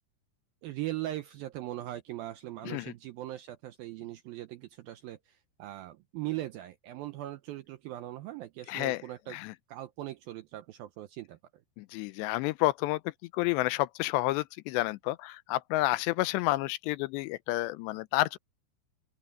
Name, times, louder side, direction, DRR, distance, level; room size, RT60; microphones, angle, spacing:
voice 1, 0.6-9.4 9.7-11.4, right 15 dB, 80° right, 2.1 m, -40 dB
voice 2, 8.7-9.0 9.3-9.5 11.8-13.0 13.3-18.4, left 18 dB, 85° left, 2.8 m, -30 dB
open air
omnidirectional pair, 5.0 m